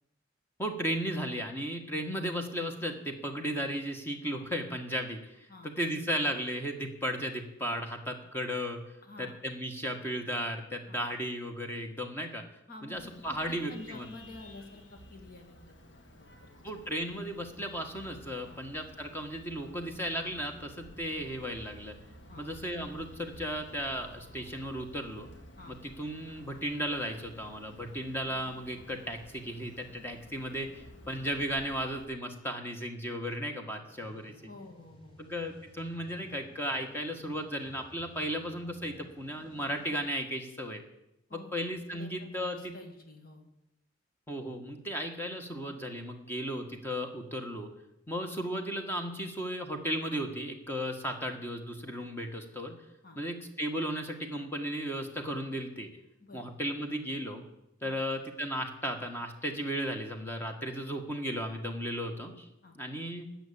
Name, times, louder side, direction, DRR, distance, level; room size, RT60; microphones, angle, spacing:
voice 1, 0.6-8.8 9.2-12.4 12.8-14.1 16.6-21.9 22.4-25.3 25.7-34.3 35.2-40.8 41.3-42.6 44.3-47.7 48.1-52.7 53.1-55.9 56.3-57.4 57.8-62.5 62.7-63.3, equal, 10° left, 3 dB, 1.6 m, -35 dB
voice 2, 9.0-9.4 10.9-11.0 12.7-16.6 18.4-18.6 22.3-22.5 25.6-25.8 34.4-35.2 41.3-41.5 41.9-43.5 53.0-53.2 56.2-56.4 57.8-58.0 62.6-62.8, left 2 dB, 50° left, 4 dB, 2.3 m, -49 dB
Vehicle horn car horn honking, 12.9-32.1, equal, 75° left, 2.2 m, -53 dB
sound 1, 33.9-40.0, left 1 dB, 30° left, 3.7 m, -56 dB
13.5 x 8.0 x 8.8 m, 0.89 s
head